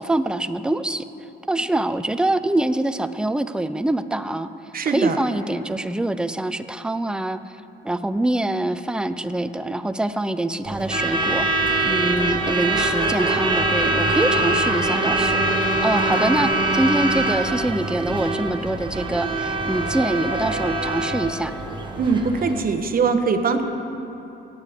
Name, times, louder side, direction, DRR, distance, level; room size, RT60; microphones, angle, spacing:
voice 1, 0.0-4.5 4.9-7.4 7.8-21.5, right 1 dB, 5° right, 11 dB, 0.4 m, -24 dB
voice 2, 4.7-5.2 22.0-23.6, right 5 dB, 45° right, 7 dB, 1.0 m, -21 dB
Truck / Alarm, 10.7-22.6, right 2 dB, 25° right, 1.1 m, -23 dB
17.5 x 8.5 x 3.6 m, 3.0 s
cardioid pair, 90°, 20 cm